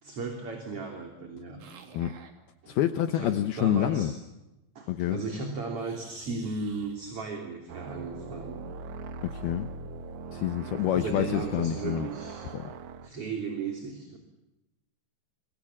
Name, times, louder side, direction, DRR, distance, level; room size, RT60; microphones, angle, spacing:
voice 1, 0.0-1.6 2.6-2.8 3.1-4.1 4.7-8.6 10.9-12.5 13.0-14.2, right 4 dB, 35° right, 3 dB, 3.4 m, -36 dB
sound 1, 1.6-2.3 5.8-7.0, right 5 dB, 50° right, 4.1 m, -51 dB
voice 2, 2.7-4.1 4.9-5.2 9.2-9.7 10.3-12.1 12.5-12.7, left 11 dB, 75° left, 9 dB, 2.4 m, -27 dB
sound 2, 7.7-13.1, right 4 dB, 85° right, 1.6 m, -41 dB
28.0 x 24.5 x 7.3 m, 0.96 s
omnidirectional pair, 5.6 m